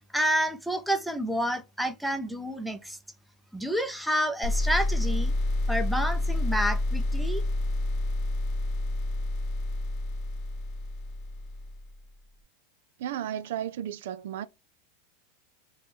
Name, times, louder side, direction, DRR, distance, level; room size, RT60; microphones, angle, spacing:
voice 1, 0.1-3.0 3.5-5.3 5.7-7.4, equal, ahead, 0.5 m, -29 dB
sound 1, 4.4-11.9, left 2 dB, 45° left, 0.9 m, -29 dB
voice 2, 13.0-14.4, right 10 dB, 75° right, 0.3 m, -33 dB
3.2 x 2.2 x 4.2 m
supercardioid pair, 135°, 0 cm